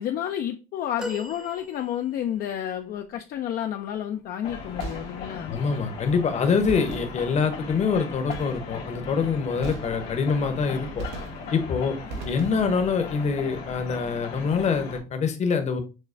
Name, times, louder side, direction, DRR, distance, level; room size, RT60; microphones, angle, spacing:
voice 1, 0.0-5.5, left 10 dB, 60° left, 0.4 m, -30 dB
sound 1, 1.0-2.4 3.1-3.2, left 1 dB, 5° right, 0.6 m, -39 dB
sound 2, 4.4-15.0, left 4 dB, 90° left, 1.3 m, -37 dB
sound 3, 4.8-5.5 6.7-7.6 8.3-8.9 9.6-10.4 11.0-11.7 12.1-12.9, right 3 dB, 85° right, 0.9 m, -39 dB
voice 2, 5.5-11.0 11.5-11.9 12.2-15.8, left 5 dB, 40° left, 0.8 m, -25 dB
6.3 x 2.2 x 2.5 m
cardioid pair, 110°, 17 cm